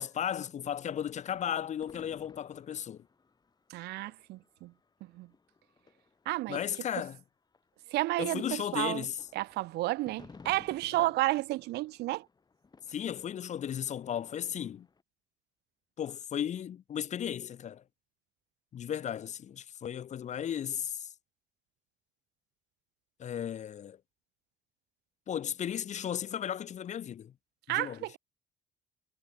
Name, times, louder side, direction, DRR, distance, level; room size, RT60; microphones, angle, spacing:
voice 1, 0.0-3.0 6.5-7.2 8.2-9.2 11.0-11.1 12.9-14.9 16.0-17.8 18.7-21.1 23.2-24.0 25.3-27.3 27.7-28.0, left 9 dB, 45° left, 0.8 m, -35 dB
sound 1, 0.9-7.2 7.5-15.0, left 4 dB, 25° left, 3.0 m, -59 dB
voice 2, 3.7-4.7 5.0-5.3 6.3-6.6 7.9-9.1 9.3-12.3 27.7-28.2, right 18 dB, 80° right, 0.6 m, -32 dB
cardioid pair, 110°, 17 cm